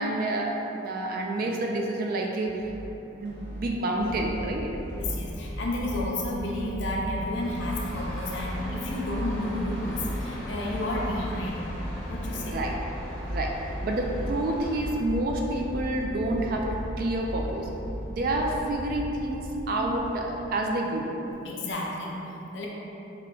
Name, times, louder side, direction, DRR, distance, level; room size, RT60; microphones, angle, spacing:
voice 1, 0.0-2.5 3.2-4.7 12.3-12.7 13.3-13.6 13.8-17.7 18.1-21.1, right 1 dB, 45° right, 0 dB, 0.3 m, -28 dB
sound 1, 2.4-2.9 3.2-3.7 4.1-4.5 4.9-5.3 5.7-6.1 6.5-7.0 7.3-7.8 8.2-8.6 9.0-9.4 9.8-10.2 10.6-11.1 11.5-11.9 12.3-12.7 13.1-13.5 13.9-14.3 14.7-15.2 15.6-16.0 16.4-16.8 17.2-17.6 18.0-18.1 18.4-18.5 18.8-18.9 19.2-19.3 19.6-19.7 20.1-20.2 20.5-20.6 20.9-21.0 21.3-21.4 21.7-21.8, right 1 dB, 65° right, 1.1 m, -40 dB
sound 2, 4.0-20.5, equal, 85° right, 0.9 m, -37 dB
voice 2, 4.9-11.6 12.1-12.6 21.4-22.7, left 1 dB, 65° left, -2 dB, 0.5 m, -32 dB
Engine starting, 6.9-15.0, left 1 dB, 5° left, 0.6 m, -41 dB
3.5 x 2.2 x 3.7 m, 3.0 s
head